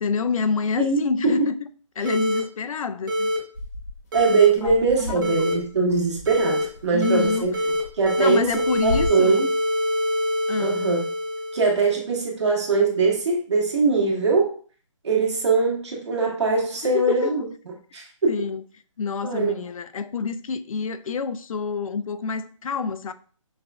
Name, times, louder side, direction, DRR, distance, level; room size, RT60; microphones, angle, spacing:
voice 1, 0.0-1.5 2.0-3.3 4.6-4.7 5.0-5.3 6.9-7.5 8.2-9.4 10.5-10.9 16.9-17.3 18.3-18.6 19.0-23.1, left 5 dB, 90° left, 0.4 m, -27 dB
voice 2, 0.8-1.5 4.1-7.5 8.0-9.5 10.6-11.0 11.5-14.5 15.0-17.4 17.9-18.3 19.2-19.6, right 4 dB, 60° right, 1.3 m, -22 dB
sound 1, 2.1-2.4 3.1-3.4 4.1-4.5 5.2-5.5 6.3-6.6 7.0-7.8 8.1-11.8, left 1 dB, 40° right, 1.2 m, -24 dB
sound 2, 3.5-9.1, left 1 dB, 30° left, 0.8 m, -35 dB
5.4 x 2.5 x 2.2 m
hypercardioid pair, 170°, 17 cm